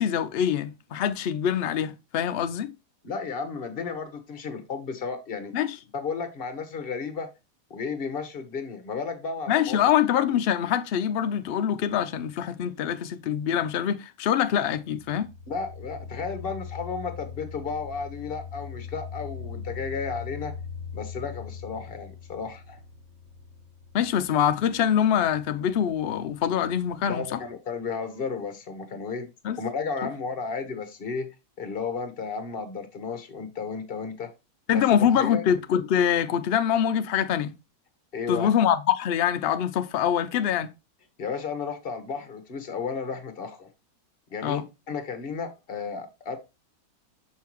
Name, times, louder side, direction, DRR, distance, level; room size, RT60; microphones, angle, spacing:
voice 1, 0.0-2.7 5.5-5.8 9.5-15.3 23.9-27.4 29.4-29.6 34.7-37.5 38.3-40.7 44.4-44.6, left 9 dB, 90° left, 0.5 m, -24 dB
voice 2, 3.0-5.5 5.9-7.3 7.7-9.8 15.5-20.5 20.9-22.8 27.1-29.3 29.6-31.3 31.6-34.3 34.7-35.5 38.1-38.5 41.2-43.7 44.3-46.4, left 5 dB, 40° left, 1.1 m, -33 dB
sound 1, 14.8-27.5, left 6 dB, 60° right, 1.5 m, -41 dB
6.6 x 5.6 x 2.9 m
omnidirectional pair, 1.6 m